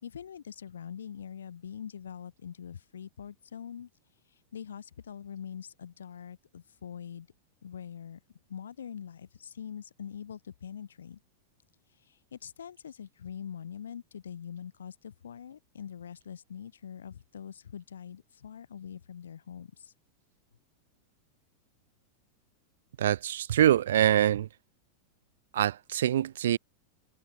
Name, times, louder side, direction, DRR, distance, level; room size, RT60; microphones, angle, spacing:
voice 1, 0.0-3.9 4.5-7.3 7.6-8.2 8.5-11.2 12.1-19.9, left 8 dB, 65° left, 4.6 m, -43 dB
voice 2, 23.0-24.5 25.5-26.6, right 11 dB, 60° right, 0.6 m, -24 dB
figure-of-eight pair, 90°, 0 cm